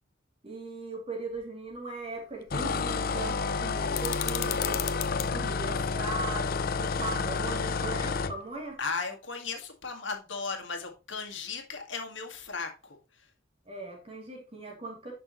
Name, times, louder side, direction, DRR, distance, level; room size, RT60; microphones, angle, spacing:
voice 1, 0.4-4.9 5.2-8.8 13.6-15.1, right 3 dB, 30° right, 3.0 m, -39 dB
sound 1, 2.5-8.4, left 4 dB, 45° left, 0.5 m, -30 dB
sound 2, 3.9-5.3, left 14 dB, 85° left, 0.8 m, -34 dB
voice 2, 8.8-13.3, left 4 dB, 60° left, 1.9 m, -36 dB
10.5 x 6.0 x 3.1 m
head